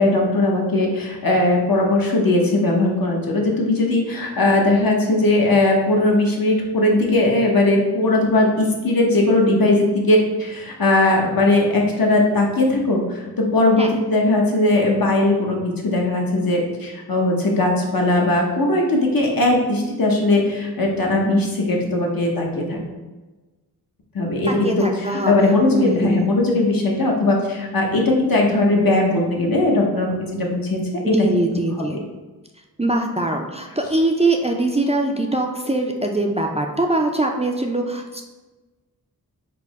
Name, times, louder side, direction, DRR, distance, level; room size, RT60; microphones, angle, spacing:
voice 1, 0.0-22.8 24.1-24.9 25.3-30.8 31.1-31.3, left 2 dB, 65° left, 0 dB, 1.0 m, -19 dB
voice 2, 24.5-26.3 31.1-32.0 32.8-38.2, right 2 dB, 15° right, 2 dB, 0.4 m, -22 dB
4.6 x 2.1 x 4.6 m, 1.2 s
wide cardioid pair, 70°, 38 cm